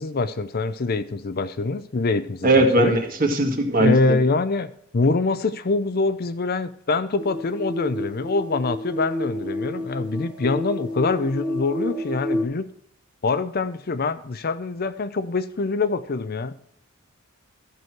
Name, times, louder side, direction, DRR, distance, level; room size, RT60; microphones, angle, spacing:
voice 1, 0.0-2.9 3.8-12.7 13.2-16.5, left 3 dB, 45° left, 12 dB, 0.5 m, -24 dB
voice 2, 2.4-4.2, right 2 dB, 40° right, 3 dB, 1.8 m, -19 dB
sound 1, 7.2-12.4, left 1 dB, 5° right, 1.2 m, -30 dB
13.0 x 6.2 x 4.7 m, 0.67 s
head